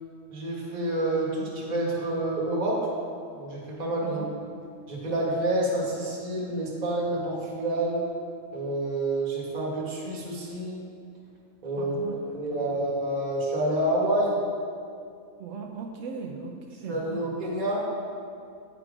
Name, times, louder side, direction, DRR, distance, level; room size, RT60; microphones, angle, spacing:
voice 1, 0.3-2.8 3.3-4.2 4.9-8.0 8.5-10.8 11.6-12.0 12.3-14.4 16.9-17.8, right 1 dB, 30° right, -4 dB, 1.3 m, -28 dB
voice 2, 11.8-12.8 15.4-17.3, right 5 dB, 70° right, 2 dB, 1.0 m, -38 dB
9.0 x 3.8 x 4.8 m, 2.4 s
omnidirectional pair, 1.4 m